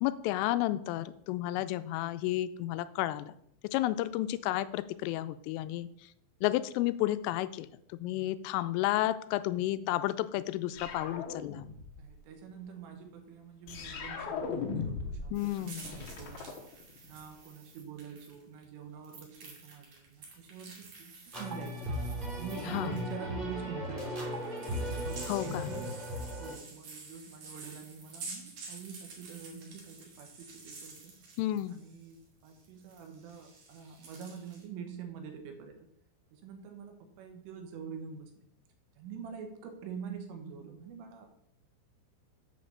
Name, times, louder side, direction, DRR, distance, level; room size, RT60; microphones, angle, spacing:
voice 1, 0.0-3.3 3.7-5.9 6.4-11.7 15.3-15.9 22.7-23.0 25.3-25.7 31.4-31.8, left 15 dB, 85° left, 13 dB, 3.1 m, -32 dB
sound 1, 10.8-12.1 13.7-15.3 15.6-17.2, left 5 dB, 65° left, 2.7 m, -38 dB
voice 2, 12.0-16.6 17.0-21.9 22.4-24.3 25.0-31.2 31.7-35.9 36.3-38.5 39.0-41.3, right 6 dB, 80° right, 4 dB, 3.9 m, -45 dB
sound 2, 15.3-18.6 19.0-23.1 24.3-32.1 32.4-34.6, right 3 dB, 50° right, 2.7 m, -50 dB
sound 3, 21.3-26.5, equal, 15° right, 1.9 m, -37 dB
8.5 x 5.2 x 7.0 m, 0.71 s
omnidirectional pair, 5.7 m